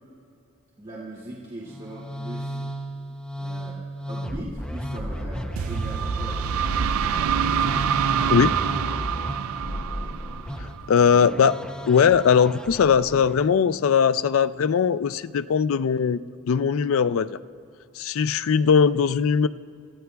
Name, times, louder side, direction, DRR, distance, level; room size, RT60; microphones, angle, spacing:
voice 1, 0.8-2.6 3.4-3.8 4.1-6.4 6.7-8.8 10.9-11.3, right 1 dB, 35° right, -7 dB, 2.4 m, -39 dB
Musical instrument, 1.6-13.4, equal, 5° left, 0.6 m, -33 dB
sound 1, 5.6-11.2, right 8 dB, 75° right, 0.3 m, -26 dB
voice 2, 10.6-11.5 11.9-16.2 16.5-17.4 18.0-19.5, left 6 dB, 70° left, 14 dB, 0.4 m, -20 dB
28.0 x 15.0 x 2.3 m, 2.6 s
head